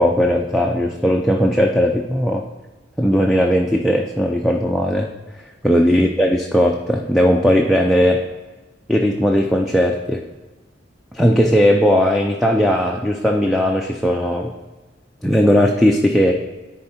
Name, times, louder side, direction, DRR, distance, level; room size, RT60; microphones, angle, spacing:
voice 1, 0.0-2.4 3.0-5.1 5.6-8.2 8.9-10.2 11.1-14.5 15.2-16.3, equal, ahead, 1 dB, 0.4 m, -17 dB
10.5 x 4.4 x 4.2 m, 1.2 s
head